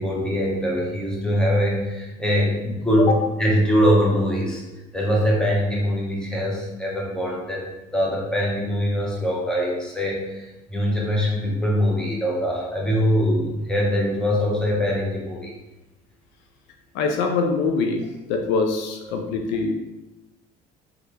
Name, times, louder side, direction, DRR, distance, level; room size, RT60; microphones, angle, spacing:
voice 1, 0.0-3.1 3.4-4.6 4.9-15.5, equal, 5° left, -4 dB, 1.0 m, -23 dB
voice 2, 16.9-19.7, left 4 dB, 75° left, 4 dB, 0.4 m, -23 dB
3.1 x 2.5 x 3.1 m, 1.0 s
supercardioid pair, 85°, 19 cm